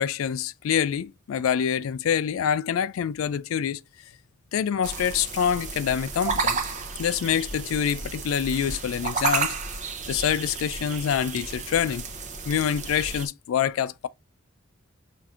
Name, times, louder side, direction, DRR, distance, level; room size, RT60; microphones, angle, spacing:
voice 1, 0.0-3.8 4.5-6.6 7.0-9.6 10.1-12.0 12.5-14.1, left 8 dB, 80° left, 0.3 m, -26 dB
sound 1, 4.8-13.3, right 5 dB, 35° right, 0.6 m, -32 dB
5.6 x 2.5 x 2.4 m
head